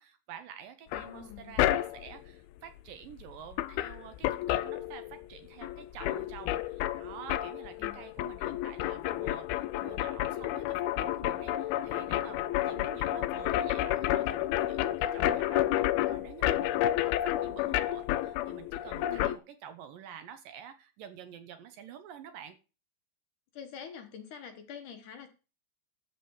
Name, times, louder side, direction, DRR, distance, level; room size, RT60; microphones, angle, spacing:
voice 1, 0.0-22.6, right 9 dB, 70° right, 9 dB, 2.4 m, -49 dB
sound 1, 0.9-2.2 3.2-3.3 3.5-5.4 5.6-19.4, left 14 dB, 80° left, 2.4 m, -30 dB
voice 2, 0.9-1.6 7.8-8.0 19.1-19.3 23.5-25.3, left 7 dB, 65° left, 6 dB, 2.4 m, -46 dB
13.0 x 5.0 x 7.1 m, 0.33 s
omnidirectional pair, 4.6 m